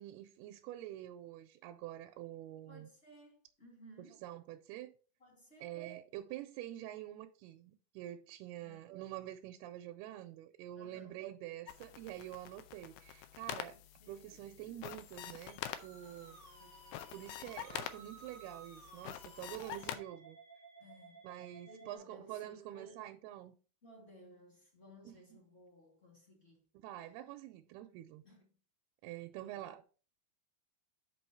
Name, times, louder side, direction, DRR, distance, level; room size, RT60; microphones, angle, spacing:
voice 1, 0.0-2.9 4.2-4.9 5.6-13.8 14.1-16.4 17.1-20.4 21.2-23.5 25.1-25.2 26.8-28.2 29.0-29.8, right 13 dB, 80° right, 2.5 m, -47 dB
voice 2, 2.7-4.2 5.2-5.8 8.6-8.9 10.7-11.3 13.7-14.5 16.6-17.4 20.8-23.0 23.8-26.7 28.2-28.6 29.4-29.7, equal, 25° left, 1.6 m, -59 dB
sound 1, 11.7-20.0, left 11 dB, 80° left, 2.2 m, -47 dB
Musical instrument, 15.7-22.0, right 4 dB, 35° right, 1.2 m, -57 dB
6.1 x 5.9 x 4.5 m
omnidirectional pair, 4.6 m